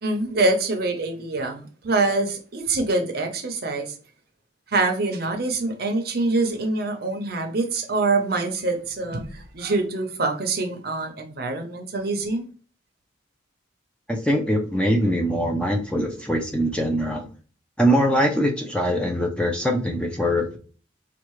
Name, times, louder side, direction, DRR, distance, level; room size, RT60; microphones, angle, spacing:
voice 1, 0.0-3.9 4.7-12.5, right 3 dB, 50° right, 0.7 m, -25 dB
voice 2, 14.1-17.3 17.8-20.6, equal, 5° left, 0.5 m, -22 dB
4.6 x 2.4 x 3.0 m
head